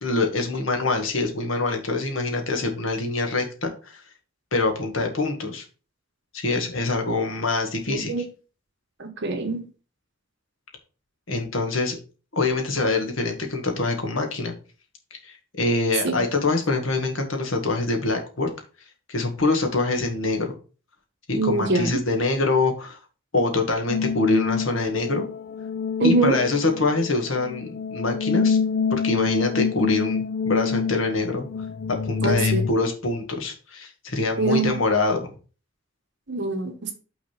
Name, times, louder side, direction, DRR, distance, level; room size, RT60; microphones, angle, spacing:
voice 1, 0.0-4.0 4.5-5.6 6.3-8.1 11.3-12.0 12.3-14.5 15.1-18.5 19.1-20.6 21.3-23.0 23.3-25.3 26.0-28.6 28.9-31.4 31.9-35.3, left 3 dB, 75° left, 4 dB, 1.8 m, -25 dB
voice 2, 7.9-8.2 9.0-9.6 16.0-16.1 21.4-21.9 26.0-26.4 32.2-32.6 34.4-34.8 36.3-36.9, right 3 dB, 60° right, 4 dB, 1.3 m, -23 dB
sound 1, 23.9-32.7, left 6 dB, 50° left, 0.4 m, -27 dB
6.1 x 4.0 x 5.9 m, 0.35 s
head